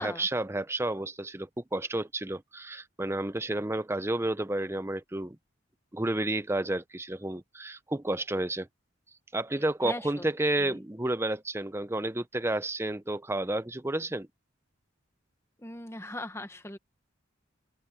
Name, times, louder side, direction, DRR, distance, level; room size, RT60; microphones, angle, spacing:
voice 1, 0.0-5.4 5.9-8.7 9.3-14.3, right 1 dB, 15° right, 0.7 m, -31 dB
voice 2, 15.6-16.8, left 1 dB, 15° left, 1.3 m, -39 dB
open air
head